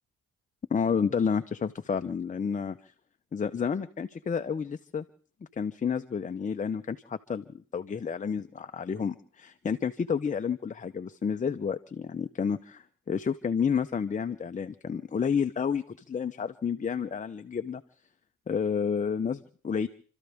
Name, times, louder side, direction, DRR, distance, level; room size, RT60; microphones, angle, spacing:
voice 1, 0.7-2.8 3.3-5.0 5.5-17.8 18.5-19.9, left 6 dB, 25° left, 8 dB, 0.7 m, -30 dB
30.0 x 13.5 x 3.5 m, 0.43 s
cardioid pair, 90°, 30 cm